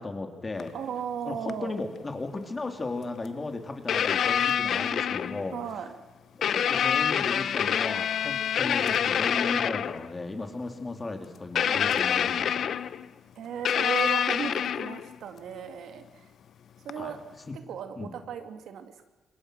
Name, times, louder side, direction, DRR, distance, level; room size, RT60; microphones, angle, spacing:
voice 1, 0.0-0.7 1.2-5.5 6.4-12.8 17.0-17.2 17.5-17.6 18.0-18.1, left 3 dB, 25° left, 5 dB, 2.9 m, -35 dB
sound 1, 0.6-0.7 1.5-1.6 3.3-3.4 3.9-5.6 6.4-10.1 11.6-13.1 13.7-15.2 16.9-17.0, left 8 dB, 65° left, 0.7 m, -26 dB
voice 2, 0.7-1.8 5.5-5.9 11.7-11.9 13.3-16.3 16.8-17.2 17.5-19.0, right 8 dB, 85° right, 7 dB, 2.2 m, -36 dB
27.0 x 22.0 x 6.3 m, 1.3 s
cardioid pair, 120°, 0 cm